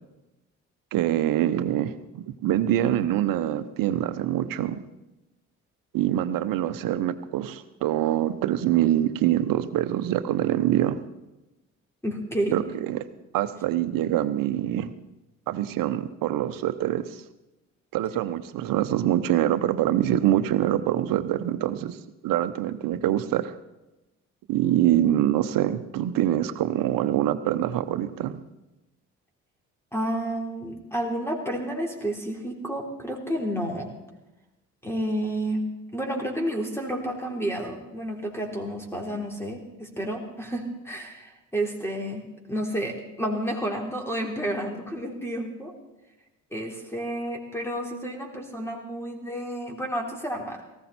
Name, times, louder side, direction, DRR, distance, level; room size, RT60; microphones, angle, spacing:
voice 1, 0.9-4.8 5.9-11.0 12.5-13.0 13.3-14.9 15.5-17.2 17.9-22.0 22.2-23.5 24.5-28.4, right 12 dB, 65° right, 12 dB, 1.0 m, -25 dB
voice 2, 12.0-12.6 29.9-33.9 34.8-35.6 35.9-45.7 46.5-50.6, right 1 dB, 5° left, 1 dB, 3.9 m, -30 dB
18.5 x 15.5 x 4.3 m, 0.98 s
hypercardioid pair, 50°, 36 cm